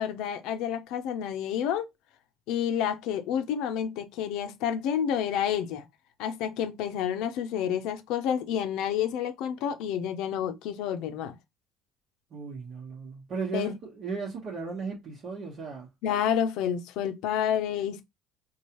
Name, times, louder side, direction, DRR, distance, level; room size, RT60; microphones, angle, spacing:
voice 1, 0.0-1.9 2.5-5.9 6.2-11.3 13.5-13.7 16.0-18.0, left 9 dB, 75° left, 0.6 m, -29 dB
voice 2, 12.3-15.9, right 5 dB, 50° right, 1.2 m, -36 dB
4.6 x 2.4 x 2.9 m
cardioid pair, 120°, 0 cm